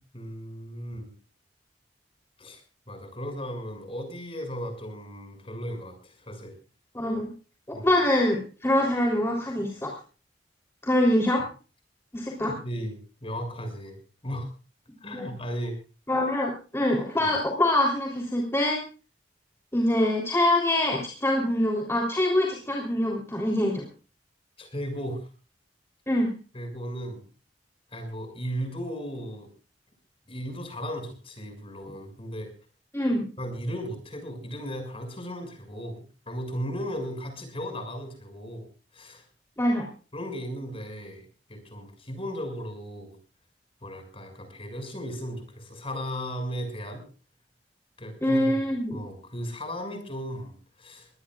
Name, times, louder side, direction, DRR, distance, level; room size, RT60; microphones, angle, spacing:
voice 1, 0.1-1.1 2.4-2.6 2.9-6.5 7.7-7.9 12.4-14.0 14.2-14.5 15.0-15.8 17.2-17.3 24.6-25.3 26.5-27.2 27.9-29.5 30.3-32.5 33.4-38.6 38.9-39.2 40.1-43.2 43.8-47.0 48.0-48.6 48.9-51.1, equal, 30° left, 5 dB, 6.6 m, -36 dB
voice 2, 6.9-7.3 7.7-9.9 10.8-11.4 12.1-12.5 15.1-15.3 16.1-18.8 19.7-23.9 26.1-26.3 32.9-33.3 39.6-39.9 48.2-49.0, left 1 dB, 15° left, -2 dB, 3.6 m, -24 dB
23.5 x 19.0 x 2.5 m, 0.36 s
head